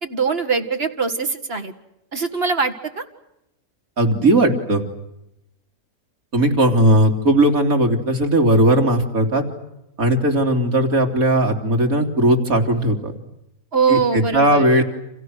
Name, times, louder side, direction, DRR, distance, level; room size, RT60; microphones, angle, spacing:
voice 1, 0.0-1.7 2.1-3.0 13.7-14.6, right 5 dB, 45° right, 5 dB, 2.1 m, -22 dB
voice 2, 4.0-4.8 6.3-9.4 10.0-13.1 13.9-14.8, right 1 dB, 70° right, 3 dB, 3.6 m, -17 dB
29.5 x 28.0 x 6.5 m, 0.87 s
omnidirectional pair, 1.5 m